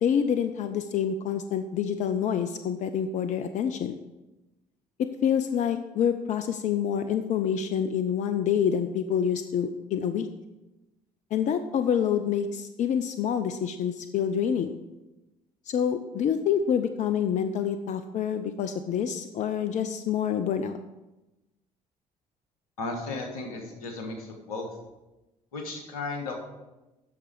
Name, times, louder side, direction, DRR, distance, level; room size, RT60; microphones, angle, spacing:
voice 1, 0.0-4.0 5.0-10.3 11.3-14.7 15.7-20.8, left 8 dB, 40° left, 9 dB, 0.5 m, -27 dB
voice 2, 22.8-24.7 25.5-26.3, left 3 dB, 75° left, 2 dB, 1.3 m, -35 dB
8.6 x 6.0 x 5.0 m, 1.0 s
figure-of-eight pair, 50°, 19 cm